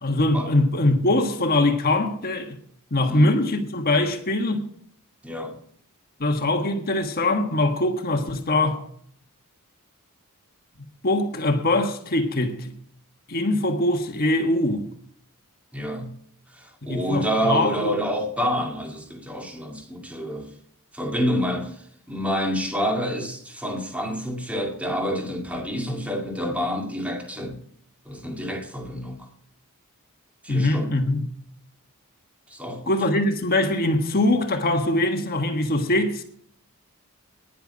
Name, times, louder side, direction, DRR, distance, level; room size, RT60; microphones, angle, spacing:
voice 1, 0.0-2.6 2.9-4.6 6.2-8.8 11.0-12.7 13.3-14.9 16.9-17.9 30.5-31.3 32.9-36.2, left 2 dB, 45° left, 1.4 m, -22 dB
voice 2, 3.1-3.4 5.2-5.6 15.7-16.2 16.5-20.5 20.9-27.6 28.1-29.3 30.4-30.9 32.5-33.0, equal, 5° right, 2.2 m, -28 dB
10.5 x 9.1 x 8.4 m
head